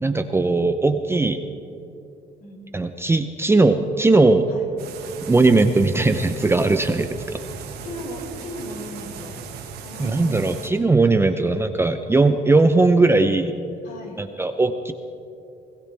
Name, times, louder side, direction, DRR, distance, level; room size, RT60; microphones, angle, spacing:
voice 1, 0.0-1.4 2.7-4.5 5.3-7.4 10.0-13.5 14.2-14.9, right 3 dB, 15° right, 8 dB, 0.6 m, -19 dB
sound 1, 4.8-10.7, right 6 dB, 70° right, 1.7 m, -38 dB
voice 2, 7.8-9.4 9.8-10.5 11.1-11.5 13.8-14.2, equal, 55° left, -2 dB, 4.6 m, -37 dB
22.5 x 18.0 x 3.4 m, 2.6 s
cardioid pair, 110°, 17 cm